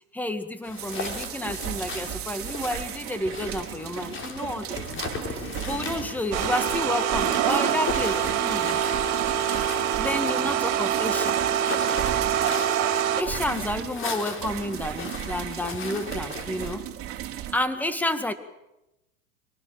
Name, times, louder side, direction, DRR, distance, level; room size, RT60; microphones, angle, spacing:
voice 1, 0.1-5.0 5.3-8.8 10.0-11.4 13.2-16.9 17.5-18.3, left 1 dB, 5° left, 9 dB, 2.0 m, -30 dB
sound 1, 0.6-16.8, left 3 dB, 30° left, 4.5 m, -37 dB
sound 2, 0.8-17.6, right 11 dB, 35° right, 3.9 m, -36 dB
sound 3, 6.3-13.2, right 9 dB, 50° right, 3.8 m, -25 dB
26.0 x 18.0 x 7.7 m, 0.94 s
hypercardioid pair, 105°, 40 cm